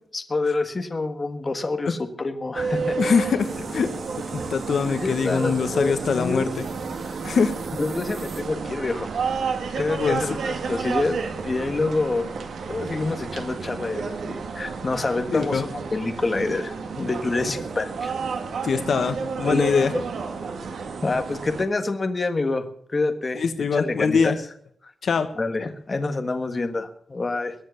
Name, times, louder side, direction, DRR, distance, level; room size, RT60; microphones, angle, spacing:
voice 1, 0.1-3.0 5.0-6.5 7.8-9.1 9.8-12.3 12.7-18.1 19.4-20.0 21.0-22.6 22.9-23.4 23.7-24.4 25.4-27.5, left 3 dB, 25° left, 6 dB, 1.5 m, -27 dB
sound 1, 2.5-21.7, right 5 dB, 85° right, 2.3 m, -31 dB
voice 2, 3.0-3.9 4.3-6.5 7.2-7.5 10.0-10.2 15.3-15.6 18.6-19.9 23.3-24.4 25.0-25.3, left 5 dB, 60° left, 8 dB, 1.2 m, -23 dB
sound 2, 3.4-8.4, right 3 dB, 55° right, 2.9 m, -37 dB
22.0 x 7.7 x 7.1 m, 0.65 s
wide cardioid pair, 155°, 0 cm